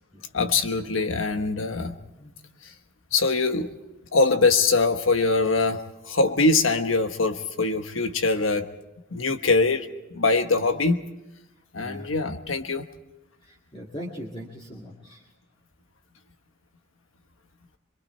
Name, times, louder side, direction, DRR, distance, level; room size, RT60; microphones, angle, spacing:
voice 1, 0.3-1.9 2.6-2.7 3.1-3.7 4.1-8.7 9.1-11.0 11.7-12.8, left 3 dB, 85° left, 7 dB, 1.3 m, -23 dB
voice 2, 10.6-10.9 11.8-12.1 13.4-15.2, equal, 25° left, -3 dB, 2.2 m, -40 dB
26.0 x 22.5 x 4.5 m, 0.95 s
head